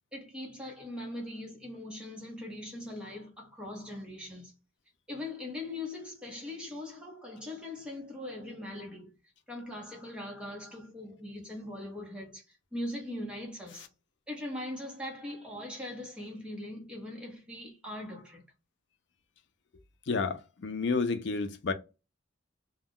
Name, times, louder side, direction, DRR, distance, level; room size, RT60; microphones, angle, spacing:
voice 1, 0.1-4.5 5.1-9.1 9.5-13.9 14.3-18.4, left 1 dB, 5° right, 0.8 m, -41 dB
voice 2, 20.1-21.7, left 4 dB, 60° left, 0.4 m, -30 dB
2.3 x 2.2 x 3.5 m
head